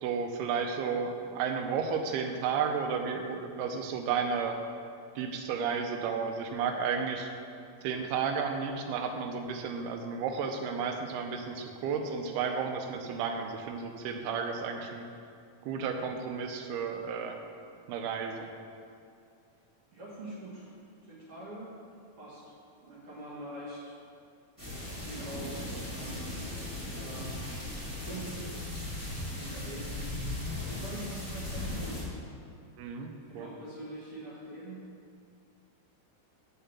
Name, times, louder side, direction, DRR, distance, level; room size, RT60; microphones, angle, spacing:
voice 1, 0.0-4.6 5.2-7.3 7.8-15.1 15.6-17.4 17.9-18.5 32.8-33.5, right 6 dB, 90° right, 5 dB, 2.7 m, -32 dB
voice 2, 19.9-20.7 21.1-21.7 22.2-22.4 22.8-23.8 25.0-26.3 26.8-27.3 28.0-28.6 29.2-30.1 30.6-32.0 33.3-34.8, right 1 dB, 55° right, -7 dB, 1.7 m, -44 dB
sound 1, 24.6-32.0, left 1 dB, 15° right, 1.4 m, -37 dB
7.3 x 5.6 x 6.9 m, 2.4 s
omnidirectional pair, 4.4 m